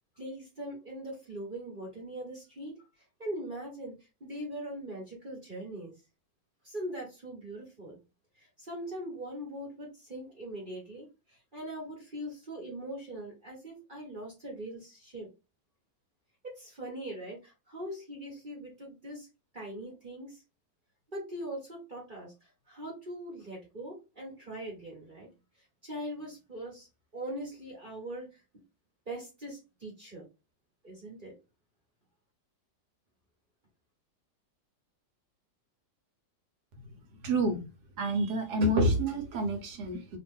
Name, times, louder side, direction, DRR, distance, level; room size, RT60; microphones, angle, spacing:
voice 1, 0.2-2.8 3.2-5.9 6.6-8.0 8.3-15.3 16.5-19.3 19.5-20.4 21.1-26.9 27.1-28.4 29.1-30.3 30.8-31.3, right 1 dB, 30° right, 1.1 m, -41 dB
voice 2, 37.2-37.6 38.0-40.2, right 1 dB, 65° right, 1.3 m, -28 dB
2.9 x 2.5 x 3.5 m
omnidirectional pair, 2.0 m